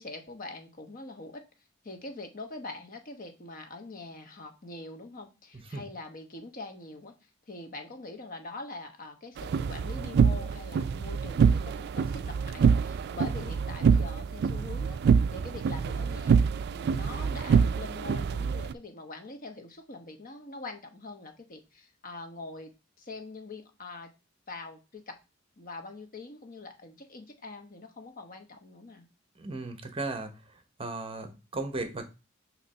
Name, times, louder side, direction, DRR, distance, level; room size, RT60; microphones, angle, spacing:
voice 1, 0.0-1.4 1.8-16.4 16.7-22.7 23.0-24.1 24.5-25.2 25.6-29.1, left 3 dB, 45° left, 6 dB, 1.0 m, -44 dB
sound 1, 9.4-18.7, right 6 dB, 55° right, 0.3 m, -26 dB
voice 2, 29.4-30.3 30.8-32.0, right 2 dB, 30° right, 7 dB, 0.9 m, -35 dB
6.7 x 3.0 x 5.5 m, 0.29 s
head